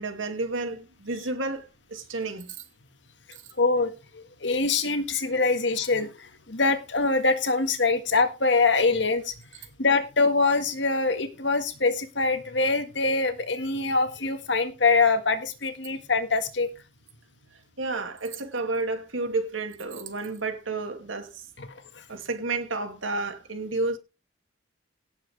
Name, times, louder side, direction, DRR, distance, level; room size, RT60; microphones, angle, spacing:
voice 1, 0.0-2.6 17.8-21.4 22.1-24.0, right 3 dB, 90° right, 2.3 m, -31 dB
voice 2, 3.6-9.3 9.8-16.7 21.6-21.8, left 3 dB, 65° left, 1.7 m, -24 dB
17.5 x 7.6 x 3.4 m
head